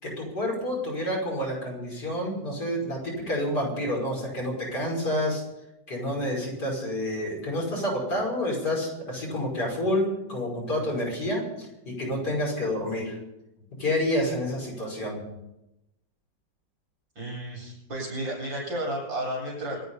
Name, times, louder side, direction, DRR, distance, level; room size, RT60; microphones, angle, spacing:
voice 1, 0.0-5.4 5.9-13.2 13.8-15.2, left 1 dB, 60° left, -2 dB, 6.1 m, -29 dB
voice 2, 17.2-19.8, right 1 dB, 80° right, -1 dB, 8.7 m, -32 dB
26.0 x 9.6 x 5.6 m, 0.91 s
omnidirectional pair, 2.0 m